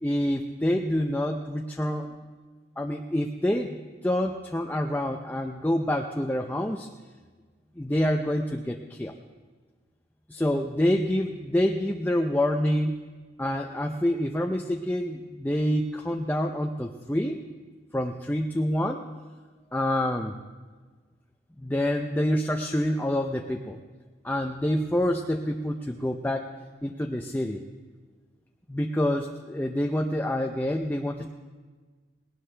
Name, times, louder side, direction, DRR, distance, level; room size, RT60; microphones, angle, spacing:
voice 1, 0.0-2.1 2.8-6.9 7.8-9.1 10.3-13.0 13.4-17.4 17.9-19.0 19.7-20.3 21.6-23.8 24.2-26.5 26.8-27.6 28.7-31.3, left 1 dB, 10° left, 2 dB, 0.5 m, -27 dB
18.5 x 18.0 x 3.3 m, 1.4 s
head